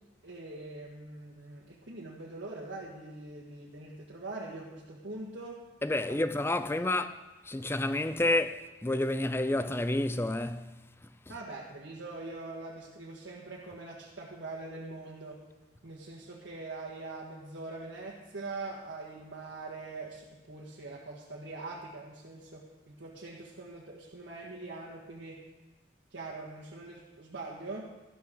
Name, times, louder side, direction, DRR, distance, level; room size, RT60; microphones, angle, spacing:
voice 1, 0.2-5.7 6.1-6.2 6.6-7.1 11.3-15.4 15.8-25.5 26.1-27.9, right 2 dB, 80° right, 1.8 m, -43 dB
voice 2, 5.8-7.1 7.5-10.7, left 1 dB, 15° left, 0.5 m, -29 dB
13.0 x 12.0 x 3.9 m
head